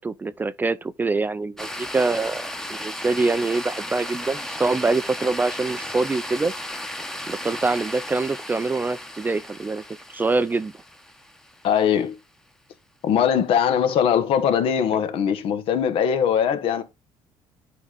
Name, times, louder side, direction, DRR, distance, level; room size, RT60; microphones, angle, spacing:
voice 1, 0.0-6.5 7.3-9.8 10.1-10.7, right 3 dB, 20° right, 0.4 m, -24 dB
sound 1, 1.6-11.9, left 1 dB, 5° left, 1.0 m, -35 dB
voice 2, 11.6-12.2 13.0-16.8, left 8 dB, 65° left, 1.4 m, -21 dB
9.7 x 3.7 x 4.0 m
cardioid pair, 110°, 10 cm